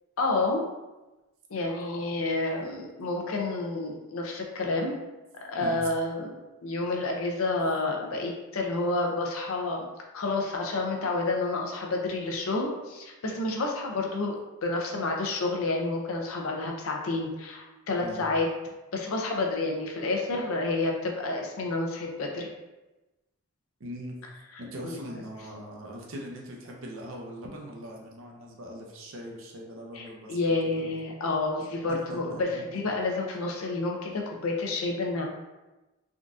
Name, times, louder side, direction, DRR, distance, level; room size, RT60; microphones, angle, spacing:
voice 1, 0.2-0.6 1.5-4.9 5.3-6.4 6.6-9.9 10.1-18.5 18.9-22.5 24.8-25.0 29.9-35.2, left 2 dB, 75° left, 1 dB, 0.5 m, -29 dB
voice 2, 23.8-24.2 24.6-30.9 31.9-32.6, equal, 70° right, -1 dB, 0.6 m, -41 dB
3.6 x 2.5 x 2.3 m, 1.1 s
head